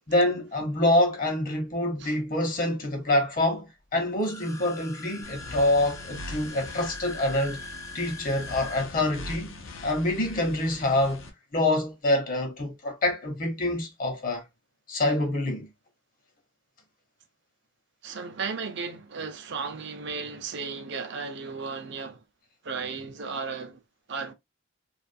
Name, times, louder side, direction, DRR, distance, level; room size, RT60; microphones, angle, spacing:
voice 1, 0.1-7.6 7.9-9.6 9.8-14.4 14.9-15.7, left 1 dB, 45° left, 0.9 m, -26 dB
sound 1, 4.1-8.8, left 3 dB, 15° left, 0.3 m, -42 dB
sound 2, 5.2-11.3, left 2 dB, 75° left, 0.6 m, -42 dB
voice 2, 18.0-22.2 22.6-23.8 24.1-24.3, right 5 dB, 60° right, 0.6 m, -35 dB
2.5 x 2.4 x 2.5 m
head